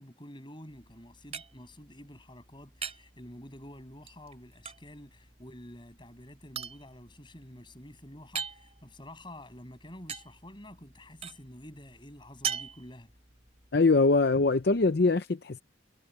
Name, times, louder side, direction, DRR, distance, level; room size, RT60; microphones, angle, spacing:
voice 1, 0.0-13.1, left 1 dB, 25° left, 7.9 m, -49 dB
sound 1, 0.7-15.0, right 7 dB, 35° right, 3.5 m, -44 dB
voice 2, 13.7-15.6, left 3 dB, 60° left, 0.6 m, -23 dB
head